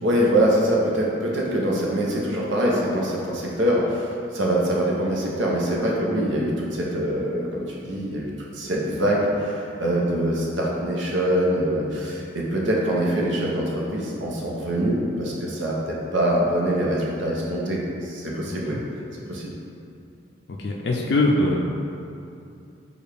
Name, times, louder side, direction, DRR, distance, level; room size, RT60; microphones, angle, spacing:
voice 1, 0.0-18.8 19.3-19.6, right 1 dB, 80° right, -3 dB, 0.7 m, -24 dB
voice 2, 18.5-18.8 20.6-21.6, left 2 dB, 55° left, -2 dB, 0.4 m, -22 dB
6.4 x 2.3 x 3.3 m, 2.6 s
head